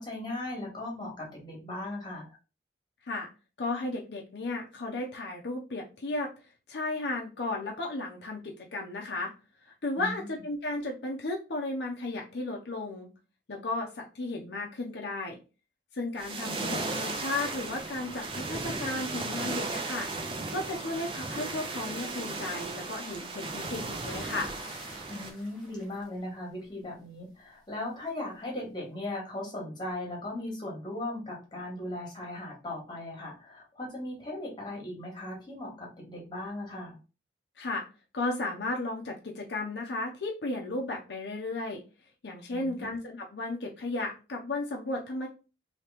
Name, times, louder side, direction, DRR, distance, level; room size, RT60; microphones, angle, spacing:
voice 1, 0.0-2.4 10.0-10.3 25.1-37.0 42.5-42.9, left 1 dB, 25° left, -1 dB, 1.2 m, -38 dB
voice 2, 3.6-6.3 6.7-9.3 9.6-13.1 13.5-15.4 15.9-24.5 37.6-37.9 38.1-41.8 42.2-45.3, left 2 dB, 65° left, 0 dB, 0.6 m, -34 dB
sound 1, 16.2-25.3, right 3 dB, 30° right, 0.5 m, -36 dB
sound 2, 24.1-26.8 28.1-28.4, equal, 5° left, 0.8 m, -49 dB
2.9 x 2.8 x 3.3 m, 0.32 s
head